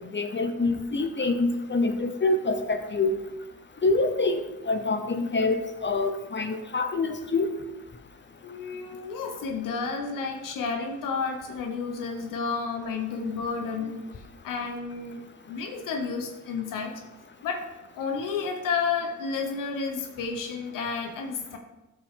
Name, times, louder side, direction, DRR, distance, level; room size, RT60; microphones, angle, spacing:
voice 1, 0.1-3.1 3.8-7.5, left 3 dB, 35° left, 7 dB, 0.8 m, -26 dB
voice 2, 8.4-14.0 14.4-15.2 15.5-17.0 17.4-17.7 17.9-21.6, left 5 dB, 85° left, 3 dB, 1.0 m, -31 dB
13.5 x 4.7 x 3.7 m, 1.0 s
cardioid pair, 65°, 32 cm